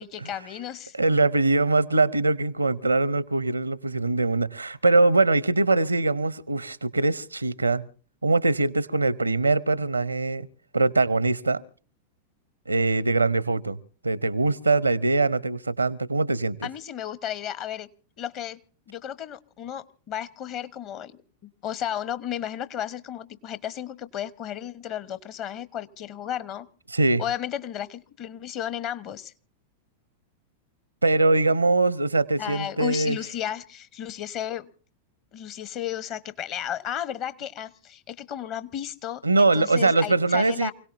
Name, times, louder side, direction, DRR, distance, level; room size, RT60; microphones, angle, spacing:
voice 1, 0.0-1.0 16.6-17.9 18.2-18.6 18.9-26.7 27.2-29.3 32.4-34.7 35.3-40.7, left 10 dB, 40° left, 1.1 m, -33 dB
voice 2, 0.9-7.8 8.2-10.5 10.7-11.6 12.7-13.8 14.0-16.7 26.9-27.2 31.0-33.2 39.2-40.7, right 3 dB, 80° right, 0.7 m, -22 dB
28.5 x 17.5 x 2.7 m
figure-of-eight pair, 90°, 0 cm